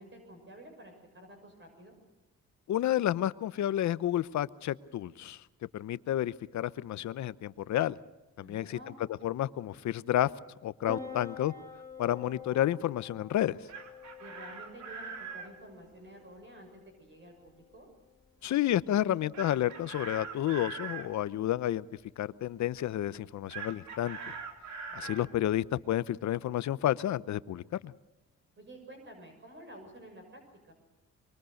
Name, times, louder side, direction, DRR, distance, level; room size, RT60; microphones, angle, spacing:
voice 1, 0.0-2.0 8.4-9.0 14.2-17.9 24.9-25.2 28.6-30.7, right 1 dB, 40° right, 3 dB, 6.7 m, -51 dB
voice 2, 2.7-5.4 5.7-8.0 8.4-8.8 9.2-10.3 10.6-11.5 12.0-13.6 18.4-21.9 22.2-24.2 24.9-27.9, left 12 dB, 70° left, 16 dB, 0.9 m, -30 dB
Piano, 10.9-25.8, left 4 dB, 10° left, 4.5 m, -50 dB
Chicken rooster, 13.4-15.5 19.3-21.1 23.5-25.3, right 5 dB, 70° right, 3.8 m, -42 dB
24.0 x 23.5 x 6.6 m, 1.1 s
cardioid pair, 90°, 30 cm